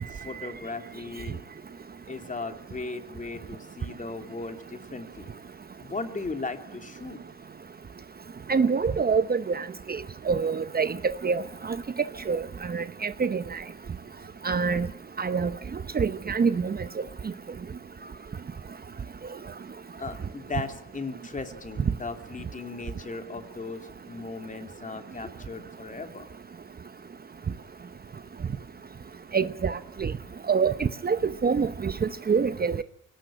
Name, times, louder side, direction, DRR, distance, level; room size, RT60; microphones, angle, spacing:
voice 1, 0.1-1.4 2.1-5.3 5.8-7.2 20.0-26.3, left 3 dB, 25° left, 2.9 m, -37 dB
voice 2, 8.5-11.0 11.2-11.8 12.3-12.4 12.7-13.6 14.4-14.9 15.2-15.5 15.9-16.8 29.3-30.1 30.5-32.8, right 5 dB, 30° right, 0.9 m, -26 dB
22.5 x 19.0 x 8.9 m
cardioid pair, 90°, 30 cm